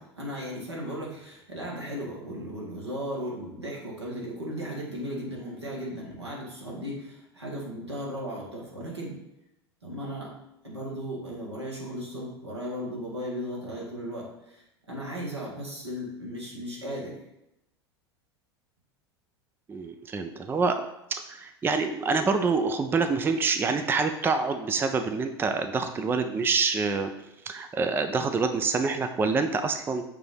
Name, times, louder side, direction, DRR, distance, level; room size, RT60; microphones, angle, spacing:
voice 1, 0.0-9.2 9.8-10.3 10.6-17.2, equal, 85° right, -4 dB, 2.0 m, -36 dB
voice 2, 19.7-20.8 21.3-27.1 27.4-30.0, right 4 dB, 15° right, 7 dB, 0.5 m, -26 dB
6.8 x 2.9 x 5.6 m, 0.86 s
figure-of-eight pair, 80°, 14 cm